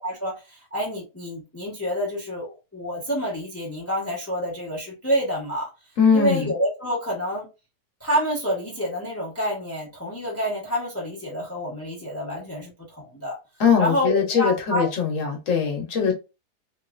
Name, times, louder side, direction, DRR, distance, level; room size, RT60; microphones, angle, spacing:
voice 1, 0.0-5.7 6.1-7.5 8.0-13.4 13.8-14.9 15.9-16.1, equal, 10° left, 0.8 m, -28 dB
voice 2, 6.0-6.5 13.6-16.1, left 6 dB, 55° left, 1.2 m, -21 dB
3.1 x 2.9 x 2.4 m
omnidirectional pair, 1.7 m